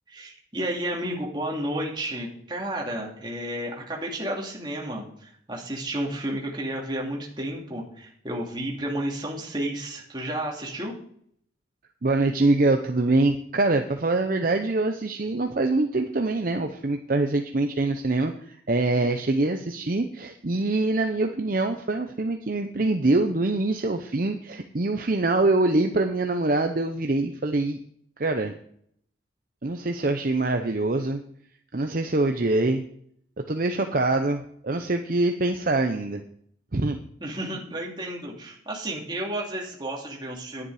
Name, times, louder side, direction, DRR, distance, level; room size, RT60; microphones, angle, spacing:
voice 1, 0.1-10.9 37.2-40.7, right 1 dB, 25° right, -2 dB, 2.7 m, -32 dB
voice 2, 12.0-27.8 28.2-28.5 29.6-31.2 31.7-32.8 33.5-36.2 36.7-37.0, right 2 dB, 50° right, 5 dB, 0.7 m, -24 dB
10.5 x 9.6 x 4.9 m, 0.65 s
head